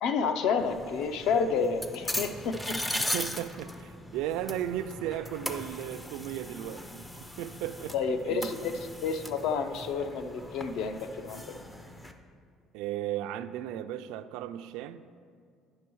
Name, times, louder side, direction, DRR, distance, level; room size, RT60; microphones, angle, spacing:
voice 1, 0.0-2.8 7.9-8.7 9.0-11.6, left 5 dB, 60° left, 9 dB, 0.5 m, -30 dB
sound 1, 0.6-12.1, left 1 dB, 10° left, 0.4 m, -39 dB
voice 2, 3.0-7.0 7.4-7.9 8.3-8.6 12.7-15.0, right 11 dB, 80° right, 11 dB, 0.3 m, -35 dB
9.6 x 6.1 x 4.6 m, 2.2 s
cardioid pair, 180°, 0 cm